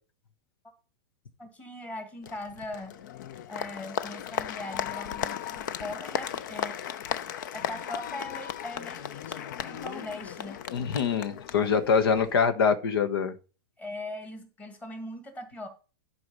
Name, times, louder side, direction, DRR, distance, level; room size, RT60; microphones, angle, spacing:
voice 1, 1.4-3.0 3.5-6.8 7.5-10.6 13.8-15.7, left 1 dB, 10° left, 1.8 m, -40 dB
Applause, 2.2-12.3, left 10 dB, 55° left, 0.7 m, -36 dB
voice 2, 10.7-13.3, left 6 dB, 80° left, 1.4 m, -24 dB
11.0 x 4.9 x 5.4 m
supercardioid pair, 170°, 12 cm